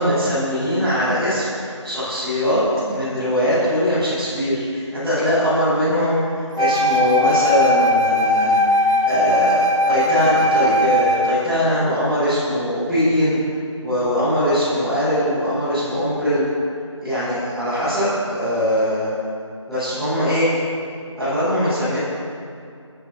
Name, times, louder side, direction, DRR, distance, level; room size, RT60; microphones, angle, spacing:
voice 1, 0.0-13.3 13.8-16.4 17.0-19.1 19.7-20.5 21.1-22.0, equal, ahead, -21 dB, 1.3 m, -21 dB
Wind instrument woodwind instrument, 6.6-11.5, left 1 dB, 85° right, 1.2 m, -18 dB
26.5 x 12.5 x 2.8 m, 2.4 s
figure-of-eight pair, 170°, 16 cm